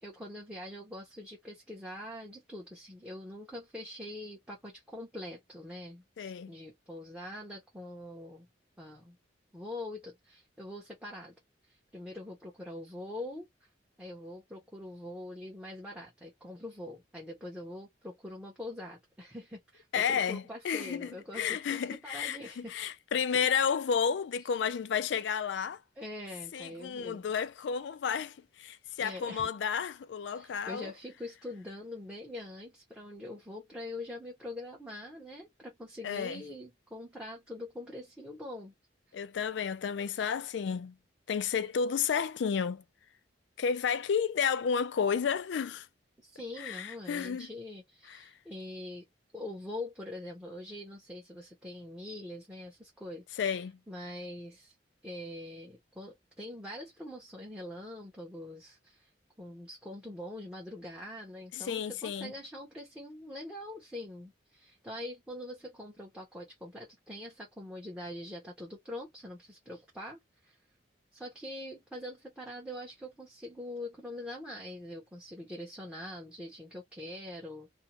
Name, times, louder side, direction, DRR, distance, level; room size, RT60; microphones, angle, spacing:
voice 1, 0.0-8.5 8.8-9.2 9.5-11.3 11.7-13.5 14.0-22.8 23.3-23.5 26.0-27.2 29.0-29.5 30.3-38.7 40.2-40.3 46.2-49.1 49.3-53.4 53.9-54.7 55.0-59.1 59.4-70.6 71.1-77.7, left 1 dB, 5° right, 0.8 m, -44 dB
voice 2, 6.2-6.5 19.9-21.1 21.3-25.8 26.5-30.9 36.0-36.4 39.1-41.0 41.3-42.8 43.6-45.9 46.6-47.5 48.1-48.2 53.4-53.8 61.5-62.3, left 7 dB, 70° left, 0.4 m, -32 dB
2.6 x 2.2 x 2.8 m
head